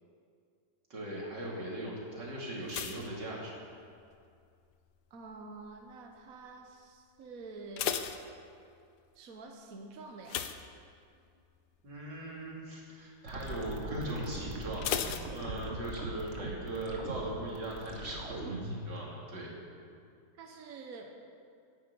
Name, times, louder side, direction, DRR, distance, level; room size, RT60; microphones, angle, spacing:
voice 1, 0.9-3.5 11.8-19.5, right 1 dB, 90° right, -4 dB, 3.7 m, -39 dB
sound 1, 2.7-4.2 4.4-4.9 5.5-5.9 6.2-6.3 6.7-6.8 7.4-9.0 10.2-11.4 11.7-12.0 12.4-12.5 14.8-16.0 16.3-16.4, left 9 dB, 75° left, 1.3 m, -37 dB
voice 2, 5.1-8.1 9.1-10.5 20.4-21.2, right 3 dB, 55° right, 2 dB, 1.4 m, -48 dB
sound 2, 13.3-18.9, right 2 dB, 40° right, 1.6 m, -41 dB
10.5 x 10.5 x 8.6 m, 2.3 s
omnidirectional pair, 1.8 m